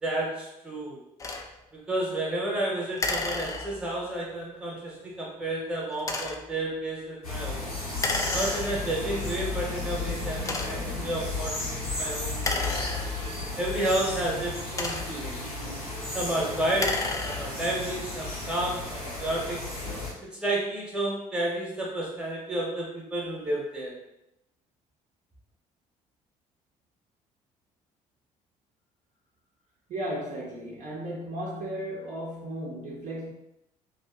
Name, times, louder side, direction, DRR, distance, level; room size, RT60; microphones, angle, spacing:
voice 1, 0.0-1.0 1.7-7.7 8.3-12.8 13.6-15.4 16.1-19.7 20.2-23.9, right 1 dB, 5° right, -3 dB, 0.9 m, -31 dB
sound 1, 1.2-1.5 3.0-4.0 6.0-6.5 8.0-9.0 9.7-9.8 10.4-11.0 12.3-13.5 14.5-15.4 16.6-17.7, left 3 dB, 20° left, 0.3 m, -32 dB
sound 2, 7.2-20.1, left 2 dB, 90° left, 0.9 m, -34 dB
voice 2, 29.9-33.3, right 1 dB, 45° right, -4 dB, 0.7 m, -35 dB
2.5 x 2.4 x 2.4 m, 0.85 s
figure-of-eight pair, 50°, 18 cm